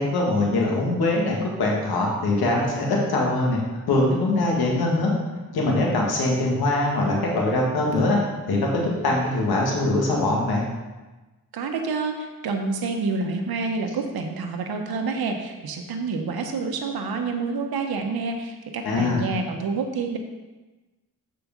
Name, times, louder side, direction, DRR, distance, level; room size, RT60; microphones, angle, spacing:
voice 1, 0.0-3.6 3.9-8.2 8.5-10.6 18.8-19.2, left 2 dB, 85° left, -2 dB, 1.8 m, -22 dB
voice 2, 11.5-20.2, right 4 dB, 80° right, 4 dB, 1.0 m, -28 dB
7.1 x 5.0 x 5.2 m, 1.2 s
cardioid pair, 60°, 37 cm